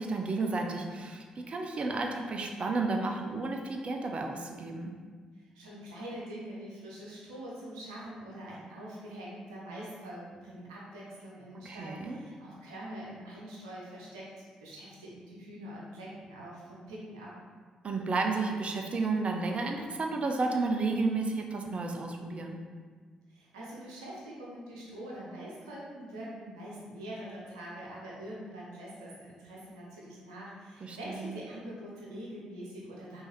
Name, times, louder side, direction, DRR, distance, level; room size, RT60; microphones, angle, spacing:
voice 1, 0.0-4.9 11.5-12.2 17.8-22.6 30.8-31.4, right 3 dB, 40° right, 3 dB, 0.6 m, -32 dB
voice 2, 5.3-17.3 23.3-33.2, right 1 dB, 75° right, -5 dB, 0.9 m, -44 dB
5.5 x 2.7 x 3.0 m, 1.5 s
figure-of-eight pair, 40°, 3 cm